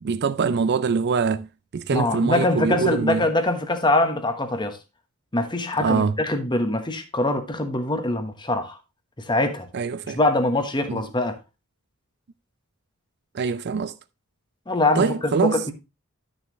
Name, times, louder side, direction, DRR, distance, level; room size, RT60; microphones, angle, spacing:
voice 1, 0.0-1.5 1.7-3.3 5.8-6.2 9.7-10.2 10.9-11.0 13.3-13.9 15.0-15.6, right 5 dB, 50° right, 0.4 m, -23 dB
voice 2, 1.9-4.8 5.3-8.8 9.2-9.7 10.1-11.4 14.7-15.7, left 2 dB, 20° left, 1.2 m, -23 dB
11.5 x 6.5 x 3.0 m
head